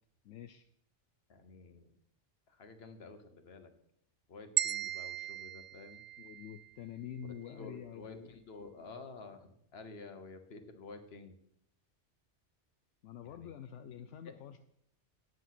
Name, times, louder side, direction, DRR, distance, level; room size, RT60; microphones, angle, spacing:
voice 1, 0.2-0.7 6.2-8.3 13.0-14.6, left 9 dB, 80° left, 8 dB, 0.9 m, -47 dB
voice 2, 1.3-1.9 2.5-3.7 4.3-6.0 7.4-11.4 13.2-13.5 13.9-14.3, left 3 dB, 60° left, 8 dB, 1.4 m, -51 dB
sound 1, 4.6-6.7, right 10 dB, 60° right, 0.4 m, -37 dB
9.8 x 7.9 x 5.9 m, 0.72 s
omnidirectional pair, 1.2 m